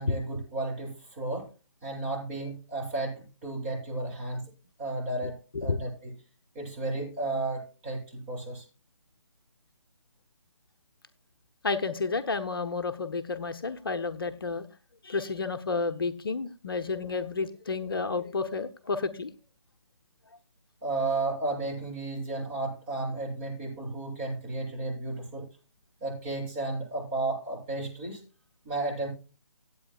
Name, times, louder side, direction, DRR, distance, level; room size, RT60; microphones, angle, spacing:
voice 1, 0.0-1.5 1.8-4.4 4.8-6.1 6.5-8.6 20.8-25.5 26.0-28.2 28.6-29.1, right 2 dB, 25° right, -4 dB, 7.5 m, -33 dB
voice 2, 11.6-14.6 15.0-19.3, left 4 dB, 50° left, 9 dB, 0.8 m, -31 dB
24.5 x 8.5 x 2.3 m, 0.32 s
figure-of-eight pair, 145°, 16 cm